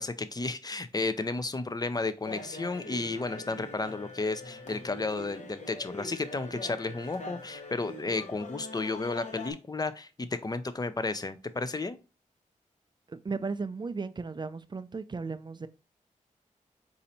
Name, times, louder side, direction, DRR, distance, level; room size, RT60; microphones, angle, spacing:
voice 1, 0.0-12.0, left 3 dB, 30° left, 0.6 m, -33 dB
sound 1, 2.2-9.5, left 2 dB, 60° left, 1.0 m, -43 dB
voice 2, 13.1-15.7, right 4 dB, 35° right, 0.4 m, -35 dB
4.2 x 2.7 x 4.1 m
cardioid pair, 55°, 14 cm